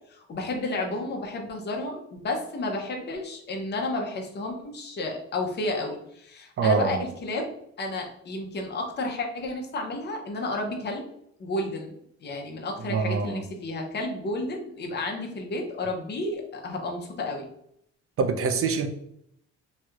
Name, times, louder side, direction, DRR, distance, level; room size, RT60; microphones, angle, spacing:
voice 1, 0.1-7.5 7.8-11.0 11.4-11.9 12.2-17.5, left 2 dB, 35° left, 1 dB, 0.7 m, -32 dB
voice 2, 6.6-7.0 12.9-13.4 18.2-18.9, right 5 dB, 50° right, 7 dB, 0.5 m, -24 dB
3.1 x 2.7 x 2.3 m, 0.74 s
cardioid pair, 90°, 30 cm